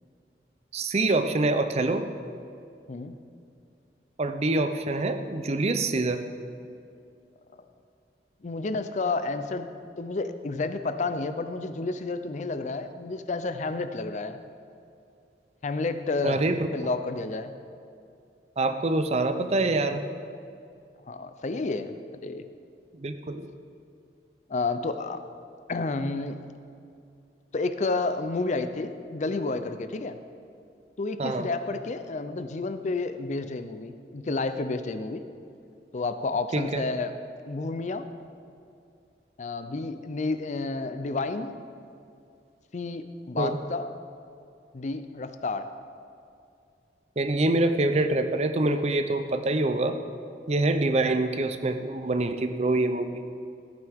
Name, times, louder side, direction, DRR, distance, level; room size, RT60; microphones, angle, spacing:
voice 1, 0.7-2.0 4.2-6.2 16.2-16.7 18.6-20.0 22.9-23.5 31.2-31.5 36.5-36.8 43.4-43.6 47.2-50.0 50.5-53.2, right 2 dB, 35° right, 8 dB, 0.5 m, -25 dB
voice 2, 8.4-9.7 10.0-14.4 15.6-16.4 16.7-17.5 21.1-21.9 22.2-22.4 24.5-25.2 25.7-26.4 27.5-30.2 31.0-35.2 35.9-37.1 37.5-38.1 39.4-41.5 42.7-43.9 44.7-45.7, left 3 dB, 40° left, 10 dB, 0.5 m, -30 dB
14.5 x 9.1 x 3.5 m, 2.5 s
head